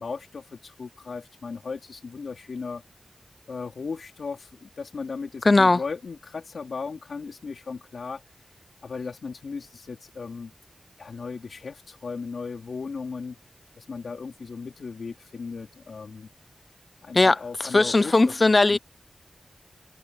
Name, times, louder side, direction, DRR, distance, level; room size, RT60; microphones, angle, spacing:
voice 1, 0.0-2.8 3.5-8.2 8.8-10.5 11.0-13.4 13.8-16.3 17.0-18.2 18.7-18.8, left 4 dB, 85° left, 3.8 m, -36 dB
voice 2, 5.4-5.8 17.1-18.8, left 2 dB, 45° left, 0.7 m, -19 dB
cardioid pair, 50°, 0 cm